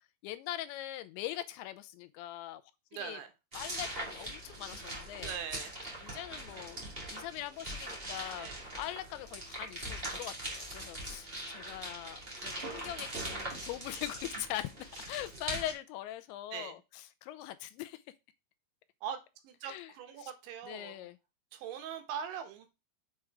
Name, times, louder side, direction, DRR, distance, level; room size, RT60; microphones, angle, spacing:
voice 1, 0.2-2.6 3.0-3.2 3.5-5.4 6.0-6.8 7.1-8.5 8.8-18.0 19.6-19.9 20.2-20.3 20.6-21.2, left 13 dB, 85° left, 2.8 m, -42 dB
voice 2, 2.9-3.3 5.2-5.8 8.3-8.6 16.5-16.8 19.0-19.2 19.4-21.1 21.5-22.7, right 8 dB, 80° right, 3.5 m, -41 dB
sound 1, 3.5-15.7, right 1 dB, 40° right, 0.8 m, -42 dB
7.6 x 4.8 x 4.7 m
omnidirectional pair, 5.4 m